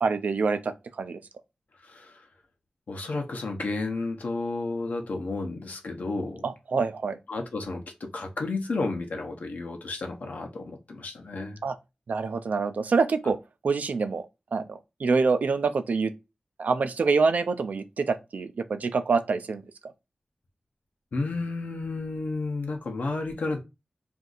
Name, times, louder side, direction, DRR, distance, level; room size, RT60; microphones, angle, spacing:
voice 1, 0.0-0.7 1.0-1.2 6.4-7.2 11.6-11.8 12.1-13.4 13.6-14.3 14.5-16.1 16.6-19.6, right 4 dB, 85° right, 0.4 m, -26 dB
voice 2, 1.8-2.1 2.9-6.5 7.3-11.6 21.1-23.6, left 3 dB, 85° left, 0.7 m, -32 dB
2.6 x 2.4 x 3.9 m
cardioid pair, 50°, 3 cm